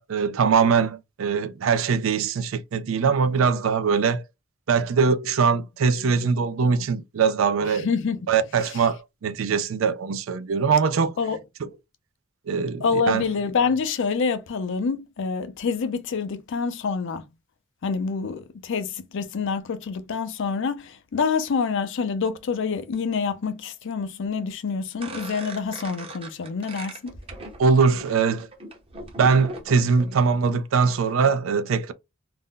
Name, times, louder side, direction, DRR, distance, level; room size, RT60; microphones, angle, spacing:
voice 1, 0.0-4.2 4.7-7.9 8.3-11.1 12.5-13.2 27.6-28.5 29.2-31.9, right 5 dB, 75° right, 0.4 m, -22 dB
voice 2, 7.6-8.2 8.7-8.8 11.2-11.4 12.8-17.2 17.8-27.2, left 5 dB, 65° left, 0.4 m, -27 dB
sound 1, 25.0-30.3, right 2 dB, 30° right, 0.7 m, -39 dB
2.5 x 2.1 x 3.6 m
head